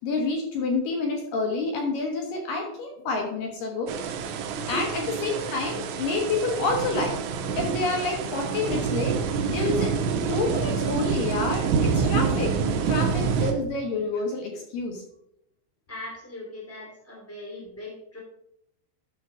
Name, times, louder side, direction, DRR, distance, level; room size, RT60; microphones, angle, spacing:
voice 1, 0.0-4.0 4.7-7.2 7.6-9.2 9.5-9.9 10.3-12.6 12.9-15.0, left 3 dB, 75° left, 2 dB, 2.1 m, -28 dB
sound 1, 3.9-13.5, right 6 dB, 80° right, 3.2 m, -27 dB
voice 2, 4.5-4.9 15.9-18.2, left 1 dB, 10° left, -2 dB, 0.7 m, -38 dB
12.5 x 6.1 x 3.6 m, 0.78 s
omnidirectional pair, 5.5 m